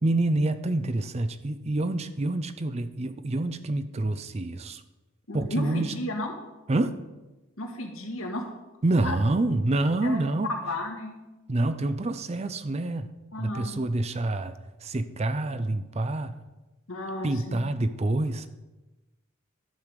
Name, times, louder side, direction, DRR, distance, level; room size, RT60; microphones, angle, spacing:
voice 1, 0.0-4.8 5.3-6.0 6.7-7.0 8.8-10.5 11.5-16.4 17.2-18.5, right 2 dB, 30° right, 12 dB, 0.5 m, -27 dB
voice 2, 5.3-6.3 7.6-8.4 9.0-9.2 10.0-10.2 10.7-11.2 13.3-13.7 16.9-17.6, left 1 dB, 75° left, 2 dB, 1.7 m, -33 dB
11.5 x 6.6 x 5.2 m, 1.1 s
head